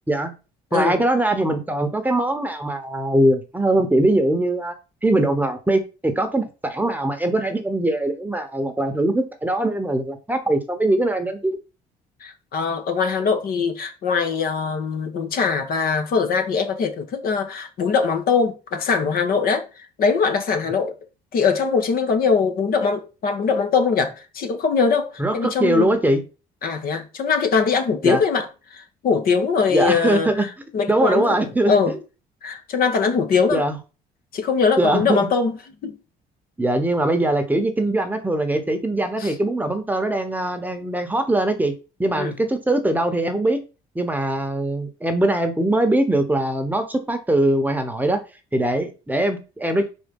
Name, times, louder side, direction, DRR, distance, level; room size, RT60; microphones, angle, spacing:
voice 1, 0.7-4.7 5.0-11.6 25.2-26.2 28.0-28.2 29.7-30.5 30.9-31.9 33.5-33.8 34.8-35.3 36.6-41.7 42.0-43.6 43.9-48.2 48.5-49.9, right 1 dB, 10° right, 1.0 m, -21 dB
voice 2, 12.2-21.0 21.3-26.0 26.6-31.9 32.4-33.6 34.3-35.6 35.8-36.0 39.2-39.3 42.2-42.3, left 5 dB, 60° left, 1.3 m, -22 dB
4.7 x 4.2 x 5.3 m
cardioid pair, 110°, 17 cm